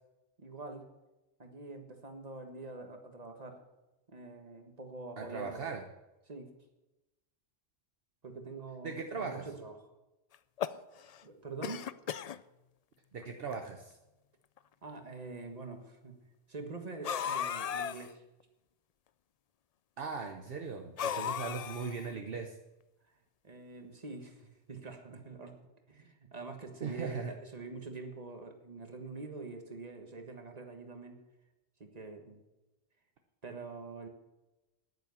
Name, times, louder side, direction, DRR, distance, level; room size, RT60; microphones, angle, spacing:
voice 1, 0.4-0.9 1.4-3.6 4.1-5.7 6.3-6.5 8.2-9.9 11.2-11.9 14.8-16.2 16.5-18.2 23.4-25.6 25.9-31.2 31.8-32.4 33.4-34.1, right 3 dB, 35° right, 5 dB, 1.6 m, -45 dB
voice 2, 5.2-5.8 8.8-9.5 13.1-14.0 20.0-22.6 26.8-27.3, right 5 dB, 55° right, 4 dB, 1.1 m, -39 dB
sound 1, 10.3-11.2 11.6-12.4 13.2-13.3 13.5-13.6 14.6-14.7 17.0-18.1 21.0-22.1, left 8 dB, 75° left, 0.3 m, -36 dB
10.5 x 9.5 x 7.0 m, 1.0 s
omnidirectional pair, 1.2 m